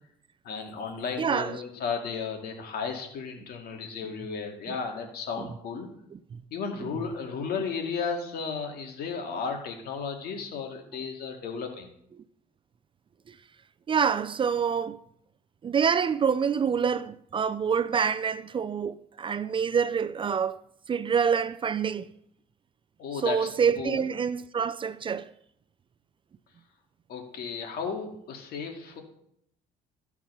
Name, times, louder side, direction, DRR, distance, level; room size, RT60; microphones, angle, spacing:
voice 1, 0.4-5.9 6.5-11.9 23.0-23.5 23.8-24.0 27.1-29.0, left 5 dB, 65° left, 2.2 m, -34 dB
voice 2, 1.2-1.6 4.7-4.8 5.4-5.5 6.1-6.4 6.8-6.9 12.2-12.3 13.3-13.4 13.9-15.0 15.6-20.6 20.9-22.1 23.2-25.3, right 7 dB, 30° right, 0.4 m, -27 dB
13.5 x 6.0 x 5.5 m
cardioid pair, 110°, 17 cm